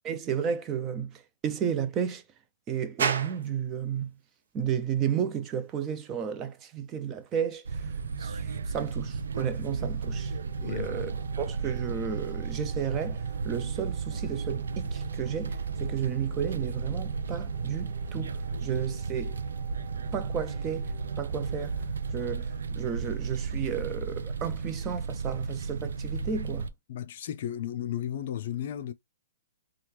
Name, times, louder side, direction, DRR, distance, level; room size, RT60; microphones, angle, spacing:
voice 1, 0.0-2.2 2.7-4.1 4.5-7.9 8.2-10.3 10.6-19.4 20.1-20.9 21.2-21.8 22.1-26.7, right 8 dB, 20° right, 0.4 m, -33 dB
sound 1, 3.0-20.4, right 6 dB, 70° right, 0.8 m, -43 dB
sound 2, 7.7-26.7, right 5 dB, 90° right, 0.3 m, -34 dB
sound 3, 10.1-23.6, right 7 dB, 45° right, 1.1 m, -53 dB
voice 2, 10.6-11.1 26.9-28.9, left 10 dB, 45° left, 0.4 m, -34 dB
2.9 x 2.3 x 3.3 m
hypercardioid pair, 165°, 0 cm